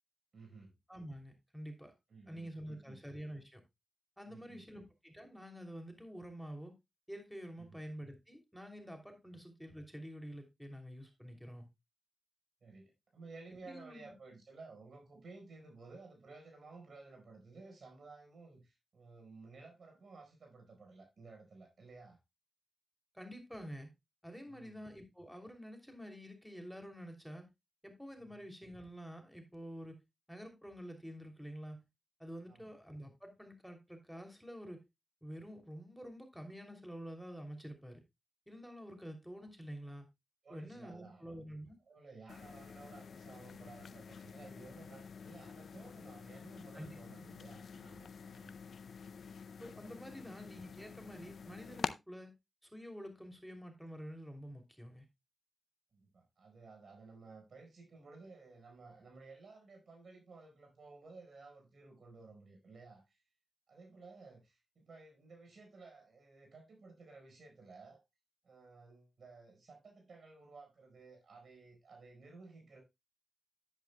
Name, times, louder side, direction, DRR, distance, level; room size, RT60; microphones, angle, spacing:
voice 1, 0.3-0.7 2.1-3.0 4.3-4.9 7.6-7.8 12.6-22.2 24.4-24.8 28.2-28.4 32.5-32.7 40.4-41.5 41.9-48.6 50.1-50.2 55.9-63.2 63.7-68.0 68.4-72.8, right 3 dB, 75° right, 4.4 m, -55 dB
voice 2, 0.9-1.9 2.3-3.6 4.2-6.7 7.1-11.7 13.6-14.1 23.1-23.9 24.2-27.5 27.8-30.0 30.3-31.8 32.2-34.8 35.2-38.0 38.5-40.1 40.5-41.8 46.7-47.0 49.6-52.3 52.6-55.1, equal, ahead, 3.0 m, -48 dB
sound 1, 42.3-51.9, left 6 dB, 80° left, 0.5 m, -47 dB
10.5 x 10.0 x 2.3 m
cardioid pair, 45°, 0 cm